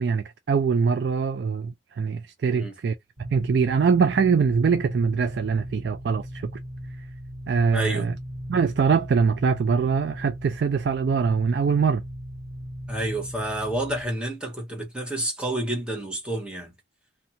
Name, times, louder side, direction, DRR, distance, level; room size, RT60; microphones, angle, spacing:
voice 1, 0.0-6.5 7.5-8.1 8.5-12.0, right 5 dB, 60° right, 0.3 m, -23 dB
sound 1, 3.2-14.0, equal, 75° right, 1.2 m, -38 dB
voice 2, 7.7-8.1 12.9-16.7, right 1 dB, 5° right, 0.9 m, -29 dB
2.6 x 2.3 x 2.7 m
head